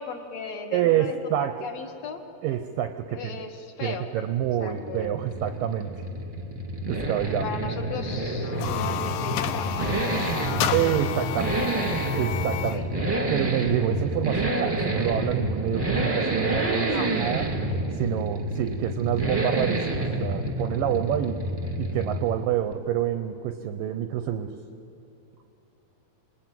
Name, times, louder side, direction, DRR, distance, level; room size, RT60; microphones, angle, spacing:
voice 1, 0.0-1.1 1.6-2.2 3.1-4.0 4.6-5.1 7.3-10.8 12.7-12.9 16.8-17.2, left 5 dB, 55° left, 5 dB, 2.1 m, -36 dB
voice 2, 0.7-1.6 2.4-3.4 3.8-6.0 6.9-7.5 10.7-11.7 12.2-12.9 13.3-17.5 17.9-21.4 21.8-24.6, right 11 dB, 80° right, 8 dB, 2.0 m, -27 dB
Accelerating revving vroom, 4.3-22.5 22.7-22.8, right 1 dB, 10° right, 1.3 m, -28 dB
sound 1, 8.4-12.8, left 11 dB, 75° left, 2.2 m, -31 dB
27.5 x 20.5 x 9.1 m, 2.8 s
omnidirectional pair, 4.9 m